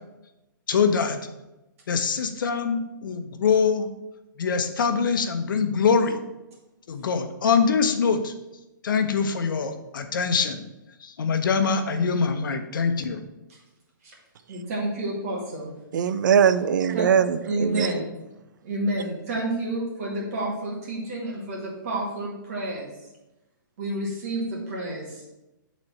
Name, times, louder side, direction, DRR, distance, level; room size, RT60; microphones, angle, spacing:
voice 1, 0.7-1.2 1.9-3.9 4.4-6.2 6.9-8.3 8.8-10.6 11.0-13.2, left 5 dB, 70° left, 7 dB, 0.9 m, -23 dB
voice 2, 14.5-15.7 16.9-17.0 17.4-18.2 18.6-22.9 23.8-25.2, right 1 dB, 45° right, -3 dB, 1.9 m, -30 dB
voice 3, 15.9-18.1, right 7 dB, 60° right, 12 dB, 0.5 m, -21 dB
7.9 x 4.1 x 4.3 m, 0.97 s
hypercardioid pair, 160°, 11 cm